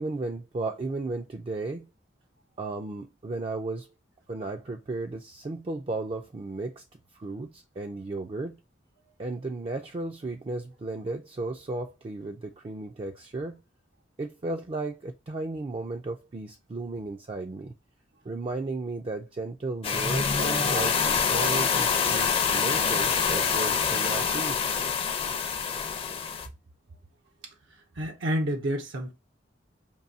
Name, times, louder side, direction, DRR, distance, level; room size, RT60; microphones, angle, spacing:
voice 1, 0.0-1.9 2.6-3.9 4.3-6.8 7.1-8.6 9.2-13.6 14.2-17.7 18.2-24.7, right 2 dB, 30° right, 0.4 m, -34 dB
sound 1, 19.8-26.5, left 6 dB, 30° left, 0.5 m, -26 dB
voice 2, 28.0-29.1, equal, 80° right, 0.8 m, -29 dB
5.3 x 2.6 x 2.6 m
head